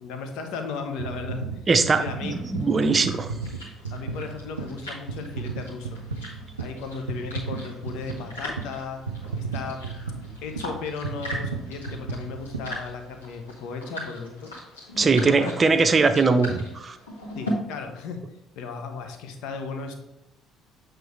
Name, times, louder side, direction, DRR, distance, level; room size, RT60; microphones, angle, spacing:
voice 1, 0.0-1.5 2.0-2.4 3.9-6.0 6.6-9.0 9.4-10.0 10.4-14.5 14.9-15.6 17.3-18.2 18.6-19.9, left 5 dB, 60° left, 6 dB, 0.8 m, -35 dB
sound 1, 1.0-13.4 14.0-14.1, right 4 dB, 80° right, 0.5 m, -35 dB
voice 2, 1.7-3.3 15.0-17.0, right 4 dB, 30° right, 9 dB, 0.6 m, -21 dB
sound 2, 2.3-17.5, left 1 dB, 80° left, 1.7 m, -40 dB
7.9 x 3.2 x 4.6 m, 0.95 s
figure-of-eight pair, 50°, 0 cm